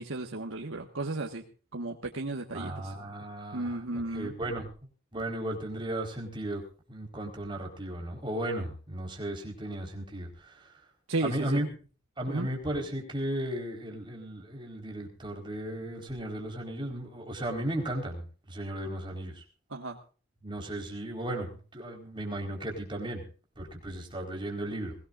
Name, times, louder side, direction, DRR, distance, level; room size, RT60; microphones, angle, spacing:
voice 1, 0.0-1.4 1.7-2.9 3.5-4.3 11.1-11.6 12.3-12.5 19.7-20.0, right 2 dB, 90° right, 2 dB, 1.6 m, -34 dB
voice 2, 2.5-4.7 5.1-6.6 6.9-10.8 11.2-11.7 12.2-19.4 20.4-23.2 23.6-25.0, right 1 dB, 25° right, 2 dB, 4.4 m, -35 dB
22.5 x 17.5 x 2.5 m, 0.39 s
head